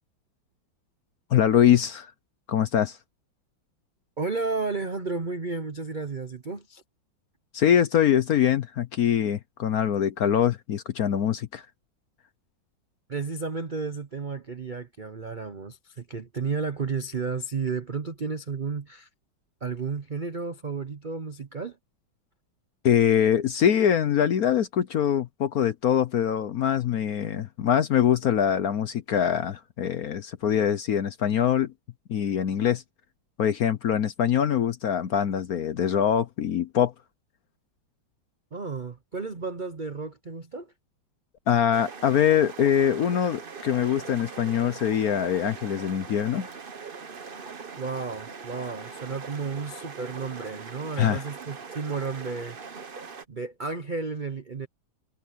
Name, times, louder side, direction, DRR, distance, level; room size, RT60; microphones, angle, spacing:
voice 1, 1.3-2.1 2.5-3.0 7.5-11.6 22.8-31.7 32.1-32.8 33.4-36.9 41.5-46.5 51.0-51.2, left 9 dB, 60° left, 1.0 m, -23 dB
voice 2, 4.2-6.8 13.1-19.1 19.6-21.8 38.5-40.7 47.8-52.6 53.3-54.7, right 4 dB, 55° right, 0.5 m, -32 dB
sound 1, 41.7-53.2, right 5 dB, 35° right, 1.0 m, -41 dB
omnidirectional pair, 2.2 m